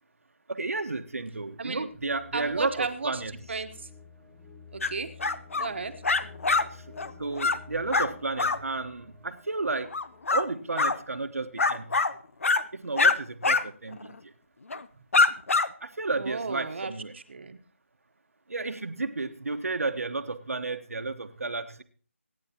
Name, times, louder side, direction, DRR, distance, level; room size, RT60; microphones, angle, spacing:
voice 1, 0.5-3.3 6.7-6.8 7.2-9.9 10.3-12.0 12.7-14.3 15.8-17.1 18.5-21.8, right 3 dB, 85° right, 7 dB, 1.2 m, -32 dB
sound 1, 1.9-11.7, left 5 dB, 15° left, 0.9 m, -51 dB
voice 2, 2.3-3.2 3.5-3.9 4.7-5.1 5.5-5.9 16.1-17.6, right 4 dB, 55° right, 7 dB, 1.2 m, -34 dB
sound 2, 4.8-4.9 5.2-5.7 6.0-6.6 7.0-7.1 7.4-7.6 7.9-8.1 8.4-8.6 9.9-10.4 10.8-11.0 11.6-12.1 12.4-12.6 13.0-13.1 13.4-13.6 13.9-14.1 14.7-14.8 15.1-15.7, left 3 dB, 70° left, 0.8 m, -23 dB
23.5 x 9.7 x 2.9 m, 0.43 s
figure-of-eight pair, 165°, 8 cm